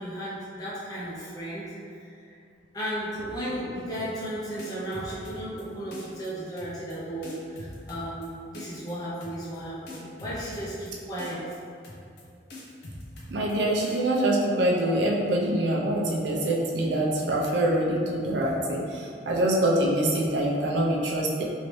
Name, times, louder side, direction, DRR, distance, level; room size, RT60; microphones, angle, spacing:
voice 1, 0.0-1.7 2.3-2.4 2.7-11.4, right 1 dB, 20° left, -9 dB, 0.5 m, -35 dB
sound 1, 3.9-4.3 4.6-5.6 5.9-6.3 6.6-7.0 7.2-8.3 8.5-8.9 9.2-9.6 9.9-10.9 11.2-11.6 11.8-12.2 12.5-13.5 13.8-14.2, left 1 dB, 65° left, 0.6 m, -43 dB
voice 2, 13.3-21.4, right 1 dB, 85° right, -3 dB, 0.5 m, -25 dB
3.1 x 2.7 x 3.1 m, 2.3 s
head